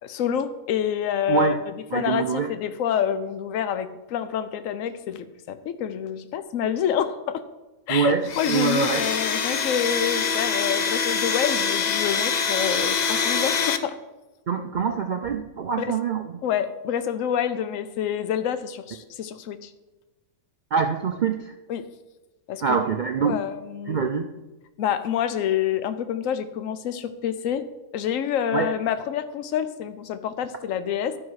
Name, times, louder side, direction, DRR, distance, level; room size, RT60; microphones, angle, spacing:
voice 1, 0.0-7.4 7.9-14.0 15.8-16.0 16.4-19.7 21.7-21.9 22.5-22.9 23.2-24.0 24.8-27.7 27.9-31.2, left 9 dB, 75° left, 11 dB, 1.0 m, -27 dB
voice 2, 1.3-1.6 1.9-2.5 7.9-9.1 14.5-16.4 20.7-21.5 22.6-23.4 23.9-24.3 28.5-28.7, right 6 dB, 70° right, 5 dB, 0.4 m, -24 dB
Domestic sounds home sounds, 8.3-13.8, left 6 dB, 60° left, 0.4 m, -25 dB
12.5 x 5.5 x 4.7 m, 1.1 s
omnidirectional pair, 1.4 m